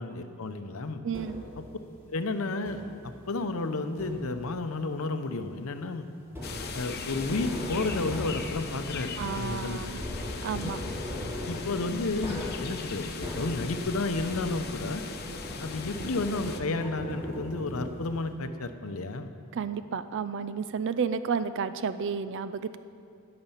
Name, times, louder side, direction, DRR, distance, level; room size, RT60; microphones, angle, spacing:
voice 1, 0.0-1.0 1.6-1.7 2.1-2.8 3.3-6.1 6.7-9.8 10.6-10.7 11.5-15.0 15.6-19.3, left 3 dB, 70° left, 9 dB, 0.7 m, -32 dB
voice 2, 1.0-1.4 9.2-10.0 10.4-10.8 19.5-22.8, right 6 dB, 60° right, 12 dB, 0.4 m, -31 dB
sound 1, 1.1-1.7 2.7-3.1 4.0-4.5 6.3-14.8 15.1-18.2, left 1 dB, 10° right, 3.0 m, -39 dB
sound 2, 6.4-16.6, left 4 dB, 50° left, 0.9 m, -39 dB
19.5 x 6.8 x 5.7 m, 2.4 s
head